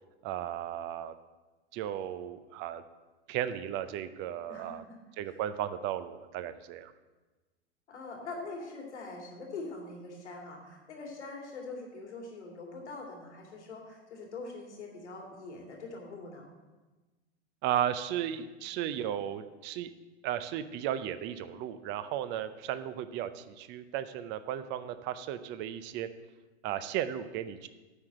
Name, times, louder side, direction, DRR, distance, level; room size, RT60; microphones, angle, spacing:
voice 1, 0.2-1.1 1.7-2.8 3.3-4.8 5.2-6.9 17.6-19.9 20.2-26.1 26.6-27.7, right 10 dB, 35° right, 12 dB, 0.5 m, -35 dB
voice 2, 4.5-5.0 5.2-5.4 7.9-16.5, left 3 dB, 80° left, 0 dB, 2.4 m, -43 dB
9.7 x 4.8 x 7.7 m, 1.2 s
hypercardioid pair, 110°, 34 cm